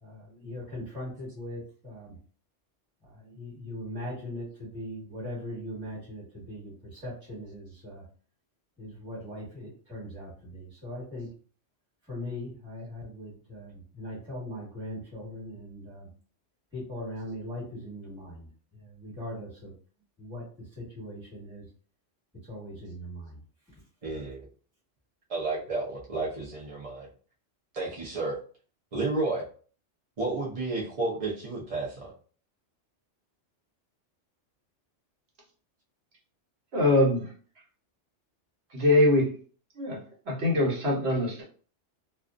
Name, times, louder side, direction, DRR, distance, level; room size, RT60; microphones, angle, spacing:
voice 1, 0.0-2.2 3.0-8.0 8.8-11.3 12.1-16.1 16.7-18.5 18.7-19.7 20.2-20.4 20.7-21.6 22.4-23.4, left 1 dB, 5° right, -9 dB, 1.2 m, -40 dB
voice 2, 24.0-24.4 25.3-27.1 27.7-28.4 28.9-29.5 30.2-32.1, right 3 dB, 45° right, -6 dB, 0.5 m, -31 dB
voice 3, 36.7-37.3 38.7-39.3 39.8-40.0 40.3-41.4, left 1 dB, 60° right, -4 dB, 1.1 m, -23 dB
2.4 x 2.2 x 2.4 m, 0.42 s
omnidirectional pair, 1.2 m